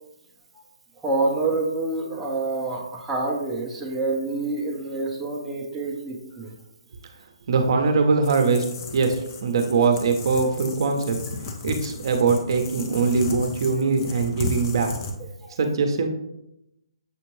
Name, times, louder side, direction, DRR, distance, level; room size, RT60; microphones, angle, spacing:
voice 1, 1.0-6.5 15.2-15.6, right 3 dB, 5° right, -3 dB, 0.6 m, -27 dB
voice 2, 7.5-8.6 8.9-11.2 11.6-14.9 15.6-16.1, right 4 dB, 55° right, 4 dB, 0.7 m, -22 dB
sound 1, 8.2-15.2, left 4 dB, 35° left, 0.6 m, -35 dB
6.9 x 2.5 x 3.1 m, 0.85 s
hypercardioid pair, 145°, 3 cm